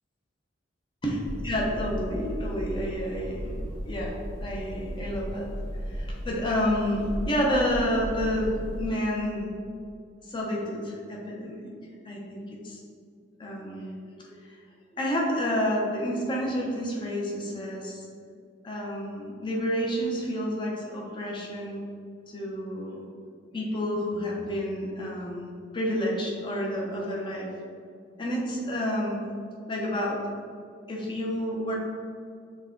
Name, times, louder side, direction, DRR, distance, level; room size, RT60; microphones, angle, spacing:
sound 1, 1.2-8.9, equal, 75° left, 0.9 m, -35 dB
voice 1, 1.4-3.6 3.9-4.1 4.4-5.5 5.9-9.5 10.3-11.6 12.0-12.8 13.4-13.9 14.2-14.6 14.9-18.0 18.6-21.8 22.3-23.0 23.4-27.5 28.2-29.2 29.7-30.2 30.9-31.8, equal, 25° left, -2 dB, 0.7 m, -29 dB
6.0 x 2.2 x 3.7 m, 2.3 s
head